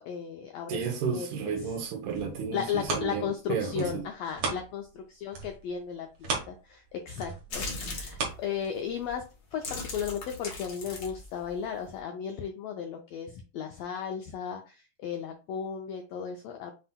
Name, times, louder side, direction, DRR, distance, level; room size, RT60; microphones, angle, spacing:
voice 1, 0.0-0.8 1.1-1.5 2.5-9.2 9.5-16.7, left 7 dB, 85° left, 1.4 m, -35 dB
voice 2, 0.7-4.0, right 6 dB, 80° right, 2.4 m, -32 dB
sound 1, 2.0-5.0 5.3-9.1 9.6-9.7, right 4 dB, 60° right, 2.1 m, -37 dB
sound 2, 7.5-8.2 9.0-9.2 9.5-12.0, left 3 dB, 65° left, 1.0 m, -38 dB
7.5 x 2.8 x 2.2 m
omnidirectional pair, 3.6 m